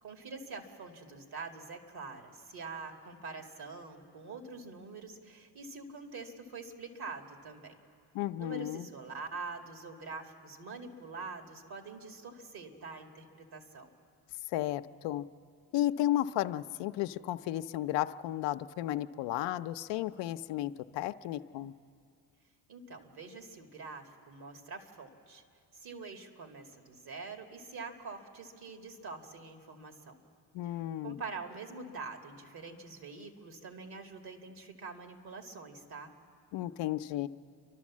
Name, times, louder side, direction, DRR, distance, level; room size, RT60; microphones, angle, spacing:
voice 1, 0.0-7.8 8.4-13.9 22.7-25.4 25.7-30.2 31.0-36.1, right 4 dB, 60° right, 4 dB, 2.3 m, -45 dB
voice 2, 8.1-8.9 14.5-15.3 15.7-21.7 30.5-31.2 36.5-37.3, left 13 dB, 80° left, 11 dB, 0.6 m, -33 dB
29.5 x 12.0 x 7.4 m, 2.4 s
supercardioid pair, 75°, 43 cm